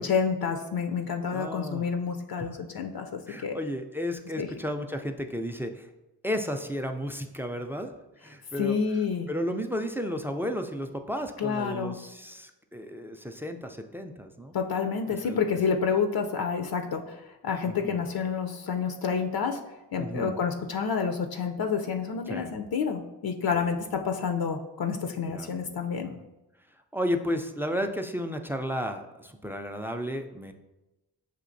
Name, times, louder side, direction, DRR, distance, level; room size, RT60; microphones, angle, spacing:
voice 1, 0.0-3.6 4.4-4.5 8.6-9.3 11.4-11.9 14.5-19.6 19.9-26.1, left 6 dB, 55° left, 5 dB, 0.5 m, -29 dB
voice 2, 1.3-1.9 2.4-2.5 3.3-5.9 6.2-7.9 8.2-8.8 9.3-14.5 15.1-15.5 17.6-18.1 20.0-20.4 22.3-22.5 23.5-23.8 25.3-25.6 26.0-26.2 26.9-30.5, equal, 5° right, 5 dB, 0.3 m, -33 dB
6.6 x 2.7 x 2.6 m, 1.0 s
supercardioid pair, 45°, 43 cm